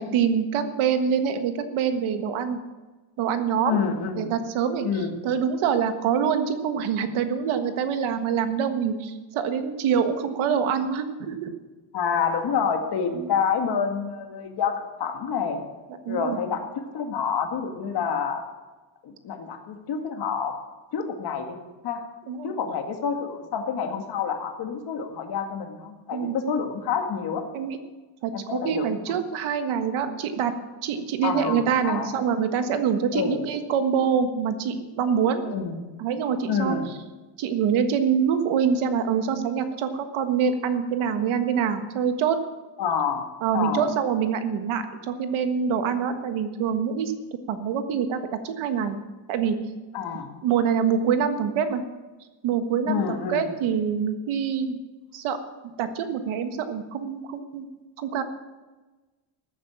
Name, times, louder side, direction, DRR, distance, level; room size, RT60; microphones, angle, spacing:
voice 1, 0.0-2.6 3.2-3.8 4.1-4.8 5.2-11.5 13.1-13.3 16.0-16.4 22.3-22.5 26.1-26.6 27.5-27.8 28.2-30.5 30.8-35.4 36.0-36.8 37.4-42.4 43.4-47.1 47.5-48.2 48.4-49.0 49.3-49.6 50.4-51.8 52.4-54.8 55.1-55.4 55.8-57.6 58.0-58.2, right 7 dB, 85° right, 8 dB, 1.6 m, -25 dB
voice 2, 3.7-4.3 4.8-5.1 11.9-15.6 16.1-18.4 19.0-20.5 20.9-21.6 21.8-22.0 22.4-27.4 28.3-29.0 31.2-32.1 33.1-33.4 35.4-35.8 36.5-36.9 42.8-43.3 43.5-43.9 49.9-50.3 52.8-53.5, left 6 dB, 55° left, 4 dB, 2.0 m, -28 dB
14.5 x 9.1 x 7.3 m, 1.2 s
cardioid pair, 165°, 47 cm